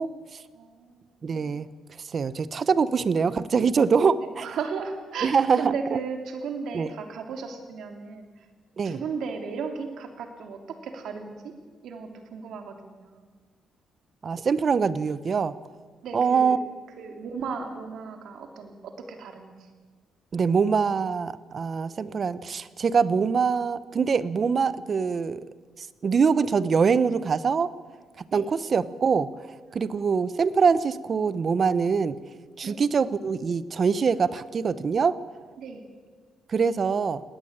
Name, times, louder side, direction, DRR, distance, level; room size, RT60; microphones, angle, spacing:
voice 1, 0.0-0.4 1.2-1.7 2.1-4.5 5.2-6.0 6.7-6.9 8.8-9.0 14.2-15.5 16.1-16.6 20.3-25.4 25.8-27.7 28.3-29.5 29.7-32.2 32.6-35.2 36.5-37.2, right 5 dB, 45° right, 16 dB, 1.0 m, -24 dB
voice 2, 0.5-1.1 4.4-8.3 8.8-11.5 11.8-13.2 16.0-16.6 17.0-19.5 28.3-28.4 32.6-32.8 35.6-35.9, right 5 dB, 75° right, 5 dB, 3.3 m, -35 dB
20.0 x 17.5 x 8.9 m, 1.5 s
cardioid pair, 90°, 0 cm